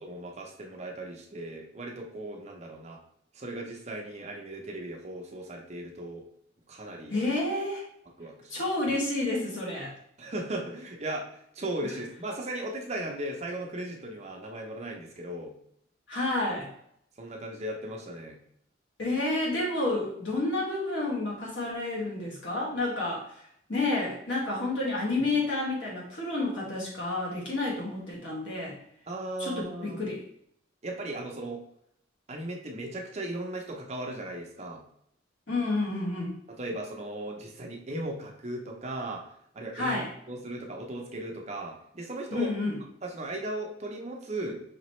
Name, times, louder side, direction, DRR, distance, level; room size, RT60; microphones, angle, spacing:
voice 1, 0.0-3.0 3.3-6.2 6.7-7.1 8.2-8.5 10.2-11.2 11.5-15.5 17.2-18.4 25.2-25.3 29.1-30.1 30.8-31.6 32.3-34.8 36.5-39.2 39.5-42.5 43.0-44.6, right 1 dB, 35° right, 0 dB, 0.7 m, -37 dB
voice 2, 7.1-7.8 8.5-9.9 16.1-16.7 19.0-23.3 23.7-28.8 29.4-30.2 35.5-36.4 39.7-40.1 42.3-42.7, left 2 dB, 80° left, -3 dB, 1.5 m, -30 dB
5.0 x 3.0 x 3.1 m, 0.71 s
head